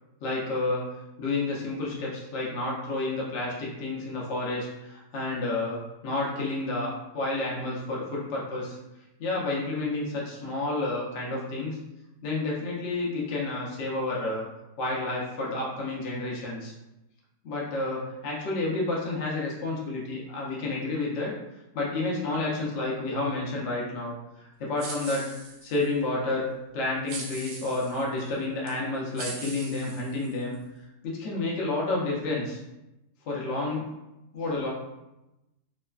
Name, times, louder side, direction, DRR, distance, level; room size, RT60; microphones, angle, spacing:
voice 1, 0.2-0.9 1.2-8.8 9.2-11.8 12.2-14.5 14.8-16.7 17.4-21.3 21.7-25.3 25.6-26.5 26.7-30.6 31.0-32.6 33.3-33.8 34.3-34.7, left 2 dB, 60° left, -4 dB, 0.8 m, -30 dB
sound 1, 24.8-25.9 27.1-28.0 28.7-28.8 29.2-30.6, right 3 dB, 70° right, 0.9 m, -40 dB
3.1 x 2.1 x 2.3 m, 0.96 s
omnidirectional pair, 1.8 m